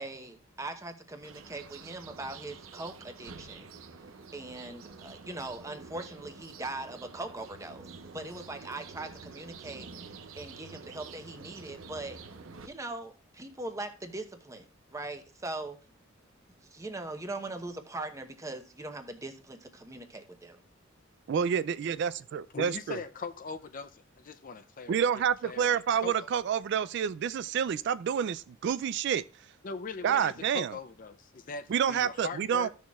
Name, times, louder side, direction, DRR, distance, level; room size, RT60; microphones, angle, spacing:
voice 1, 0.0-3.6 4.3-7.9 8.1-12.2 12.6-14.7 14.9-15.8 16.6-20.6, right 2 dB, 15° right, 0.9 m, -40 dB
sound 1, 1.2-12.7, right 4 dB, 85° right, 0.7 m, -48 dB
voice 2, 21.3-23.0 24.9-29.2 30.0-30.7 31.7-32.7, right 8 dB, 55° right, 0.3 m, -28 dB
voice 3, 22.5-25.0 25.4-26.3 29.6-32.7, left 4 dB, 40° left, 0.5 m, -41 dB
15.0 x 6.3 x 2.3 m
head